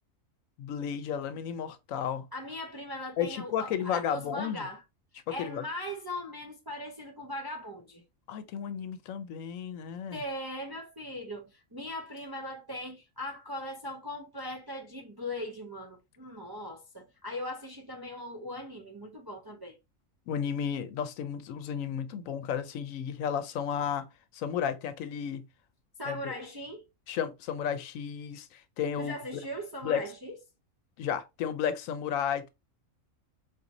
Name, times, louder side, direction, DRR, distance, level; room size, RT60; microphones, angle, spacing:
voice 1, 0.6-2.3 3.2-4.6 5.3-5.6 8.3-10.2 20.3-25.5 26.1-26.3 27.1-29.1 29.8-30.0 31.0-32.5, left 8 dB, 90° left, 1.0 m, -33 dB
voice 2, 2.3-4.8 5.3-8.0 10.1-19.8 26.0-26.9 29.0-30.4, left 1 dB, 40° right, 0.3 m, -39 dB
4.1 x 2.6 x 2.9 m
omnidirectional pair, 1.3 m